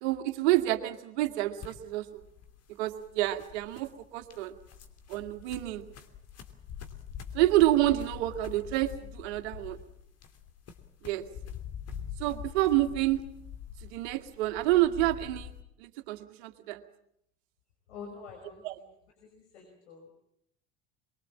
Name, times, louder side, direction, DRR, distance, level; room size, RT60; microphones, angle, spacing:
voice 1, 0.0-2.1 2.8-4.5 5.1-5.9 7.3-9.8 11.0-11.3 12.2-13.2 13.9-15.5 15.8-16.8 18.6-18.7, right 15 dB, 70° right, 7 dB, 2.0 m, -28 dB
sound 1, 1.6-15.6, left 8 dB, 45° left, 3.0 m, -45 dB
voice 2, 17.9-18.9 19.2-20.1, left 5 dB, 80° left, 2 dB, 5.6 m, -47 dB
23.5 x 22.5 x 7.4 m, 0.73 s
hypercardioid pair, 65°, 33 cm